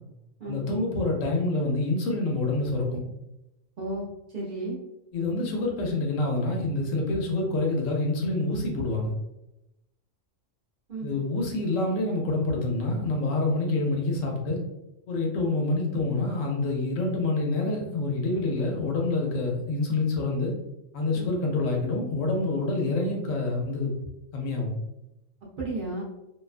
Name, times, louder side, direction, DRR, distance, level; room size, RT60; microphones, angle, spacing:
voice 1, 0.4-3.0 5.1-9.1 11.0-14.6 15.1-20.5 20.9-23.9 24.3-24.8, left 2 dB, 85° left, 0 dB, 1.0 m, -27 dB
voice 2, 3.8-4.1 4.3-4.8 10.9-11.1 21.1-21.3 25.6-26.0, right 2 dB, 50° right, -5 dB, 0.6 m, -33 dB
2.5 x 2.2 x 2.4 m, 0.90 s
omnidirectional pair, 1.3 m